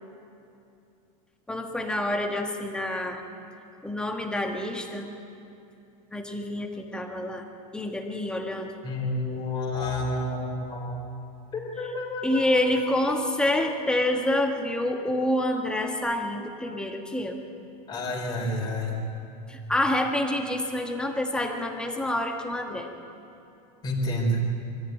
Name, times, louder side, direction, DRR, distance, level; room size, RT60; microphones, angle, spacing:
voice 1, 1.5-3.2 3.8-5.1 6.1-7.5 7.7-8.7 12.2-17.4 19.5-22.9, left 1 dB, 5° left, 3 dB, 1.6 m, -27 dB
voice 2, 8.8-11.0 11.5-13.3 13.6-13.7 17.9-19.0 23.8-24.4, left 1 dB, 20° left, -1 dB, 4.1 m, -30 dB
sound 1, 9.7-11.3, right 1 dB, 25° right, 3.2 m, -42 dB
23.5 x 14.5 x 9.3 m, 2.7 s
supercardioid pair, 155°, 20 cm